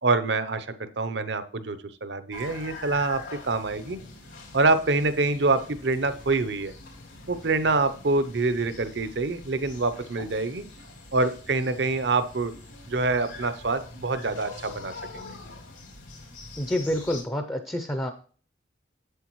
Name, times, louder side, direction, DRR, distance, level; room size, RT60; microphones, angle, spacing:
voice 1, 0.0-4.0 4.5-6.7 7.3-10.6 11.1-12.5 12.9-15.4, right 3 dB, 65° right, 12 dB, 0.7 m, -26 dB
sound 1, 2.3-17.2, left 2 dB, 85° left, 3.2 m, -44 dB
voice 2, 16.6-18.1, left 1 dB, 15° left, 7 dB, 0.5 m, -28 dB
8.1 x 7.9 x 3.1 m, 0.42 s
head